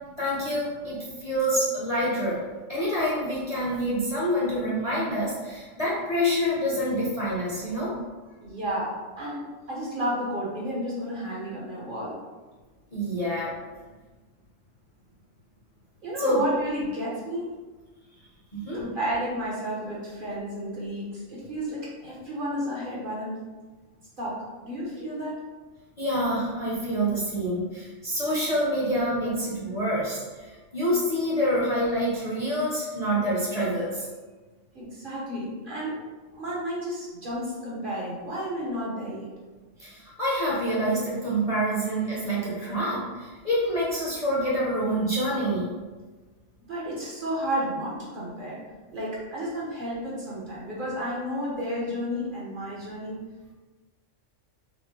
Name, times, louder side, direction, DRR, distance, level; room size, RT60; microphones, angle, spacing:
voice 1, 0.2-2.4 2.7-7.9 12.9-13.6 16.2-16.4 18.6-18.8 26.0-30.2 30.5-34.1 39.8-45.7, equal, 35° left, -8 dB, 0.7 m, -27 dB
voice 2, 8.4-12.2 16.0-17.5 18.7-23.4 24.2-25.4 34.7-39.3 46.7-48.6 48.9-53.2, equal, 45° right, -6 dB, 1.0 m, -32 dB
4.2 x 2.1 x 3.0 m, 1.3 s
omnidirectional pair, 1.3 m